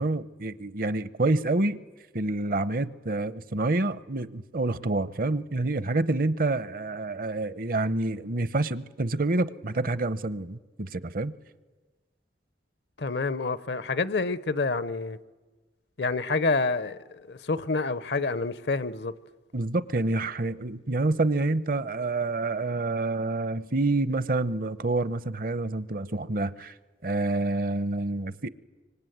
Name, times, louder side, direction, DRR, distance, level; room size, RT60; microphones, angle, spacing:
voice 1, 0.0-1.8 2.1-11.3 19.5-26.7 27.0-28.5, right 2 dB, 50° right, 0.8 m, -27 dB
voice 2, 13.0-15.2 16.0-19.1, left 3 dB, 65° left, 0.8 m, -28 dB
25.0 x 25.0 x 9.4 m
head